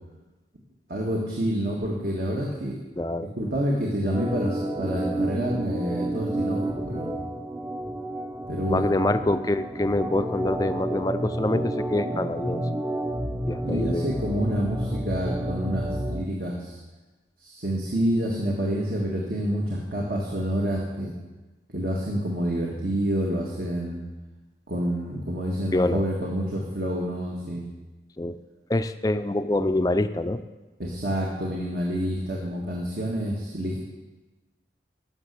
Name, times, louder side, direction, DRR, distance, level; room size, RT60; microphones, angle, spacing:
voice 1, 0.9-2.8 3.4-7.2 8.5-8.9 13.6-16.8 17.4-21.2 21.7-24.0 24.7-27.7 30.8-33.8, equal, 60° right, -2 dB, 1.7 m, -28 dB
voice 2, 3.0-3.3 8.7-12.6 13.5-14.1 25.7-26.0 28.2-28.4 28.7-30.4, left 2 dB, 20° left, 10 dB, 0.4 m, -25 dB
Organ, 4.1-16.3, right 1 dB, 20° right, 0.7 m, -30 dB
12.5 x 6.5 x 8.2 m, 1.2 s
head